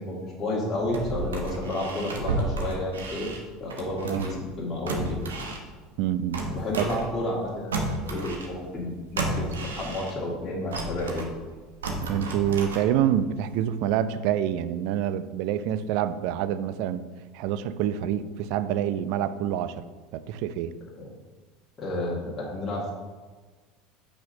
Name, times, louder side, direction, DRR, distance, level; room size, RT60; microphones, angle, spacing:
voice 1, 0.0-3.3 3.6-5.1 6.5-7.8 8.1-11.3 21.0-21.1 21.8-22.9, left 1 dB, 30° left, -6 dB, 1.9 m, -31 dB
sound 1, 0.7-4.5 4.8-7.4 7.7-10.3 10.7-13.2 13.6-13.7, right 2 dB, 80° right, 1.0 m, -33 dB
voice 2, 6.0-6.4 6.8-6.9 12.0-17.0 17.3-19.8 20.1-20.7, right 10 dB, 60° right, 13 dB, 0.4 m, -27 dB
5.8 x 4.2 x 5.3 m, 1.4 s
hypercardioid pair, 75°, 0 cm